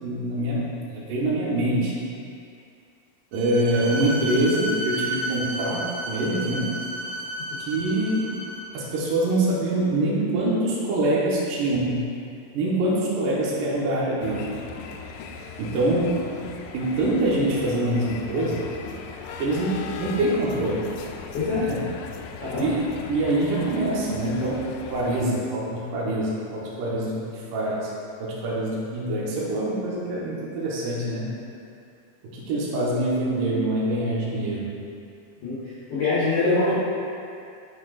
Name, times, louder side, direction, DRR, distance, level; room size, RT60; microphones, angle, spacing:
voice 1, 0.0-1.9 3.3-6.7 7.6-8.3 8.7-12.1 12.5-14.5 15.6-16.2 16.7-18.6 19.4-20.9 21.5-21.8 22.6-24.6 24.9-27.9 28.2-31.3 32.2-34.7 36.7-36.8, right 1 dB, 70° right, -6 dB, 2.5 m, -25 dB
Bowed string instrument, 3.3-8.8, right 1 dB, 85° right, 1.8 m, -32 dB
sound 1, 14.2-25.3, left 5 dB, 85° left, 1.9 m, -38 dB
voice 2, 35.4-36.7, left 3 dB, 70° left, -10 dB, 1.4 m, -24 dB
9.5 x 6.2 x 2.4 m, 2.4 s
omnidirectional pair, 4.3 m